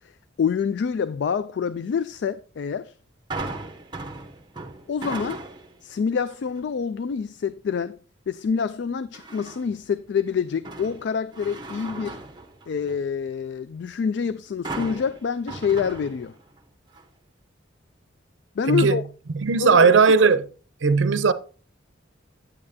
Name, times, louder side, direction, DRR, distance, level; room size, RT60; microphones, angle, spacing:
voice 1, 0.4-2.9 4.9-5.4 5.8-8.0 8.3-12.2 12.7-16.3 18.6-19.0 19.6-19.9, left 6 dB, 65° left, 0.3 m, -26 dB
sound 1, 3.3-5.8 6.3-6.7 9.1-9.8 10.3-13.1 14.6-16.6 16.9-17.0, right 2 dB, 25° right, 0.9 m, -37 dB
voice 2, 18.7-19.0 19.3-20.4 20.8-21.3, right 5 dB, 80° right, 0.6 m, -17 dB
8.7 x 8.7 x 2.7 m
head